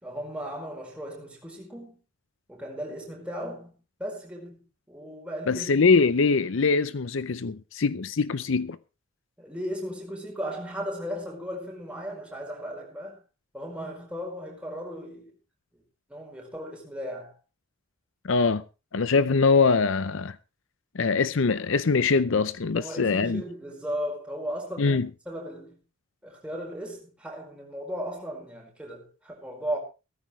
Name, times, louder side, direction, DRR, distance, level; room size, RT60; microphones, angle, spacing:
voice 1, 0.0-2.0 2.5-5.9 9.4-13.2 13.5-15.4 16.1-17.3 22.7-25.8 26.2-29.8, equal, 5° right, 4.8 m, -36 dB
voice 2, 5.5-8.8 18.2-18.6 18.9-20.4 20.9-23.4 24.8-25.1, left 4 dB, 65° left, 0.6 m, -23 dB
16.5 x 14.0 x 3.2 m
head